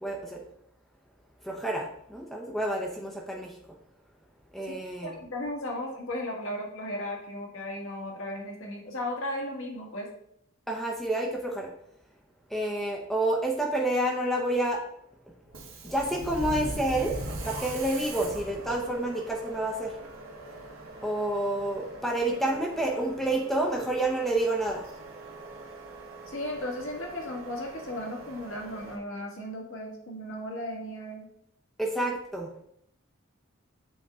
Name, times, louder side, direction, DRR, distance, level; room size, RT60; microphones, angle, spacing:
voice 1, 0.0-0.4 1.4-3.6 4.5-5.1 10.7-11.7 12.5-14.8 15.8-17.2 17.4-19.9 21.0-24.8 31.8-32.5, right 1 dB, ahead, -1 dB, 0.7 m, -29 dB
voice 2, 4.7-10.1 26.3-31.3, left 1 dB, 70° left, 0 dB, 1.6 m, -36 dB
Subway metro underground, 15.4-29.0, right 1 dB, 70° right, 1.4 m, -41 dB
7.9 x 3.6 x 3.7 m, 0.72 s
head